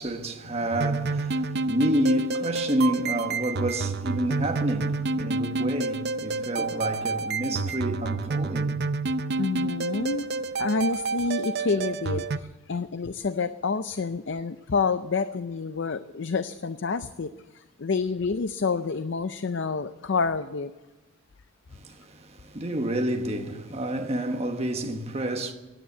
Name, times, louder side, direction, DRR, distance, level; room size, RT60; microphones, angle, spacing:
voice 1, 0.0-8.8 9.1-9.2 21.7-25.5, right 1 dB, 30° right, 1.3 m, -29 dB
sound 1, 0.7-12.4, right 3 dB, 50° right, 0.5 m, -29 dB
voice 2, 9.4-10.2 10.6-20.7, left 4 dB, 55° left, 0.5 m, -28 dB
15.5 x 10.0 x 8.1 m
head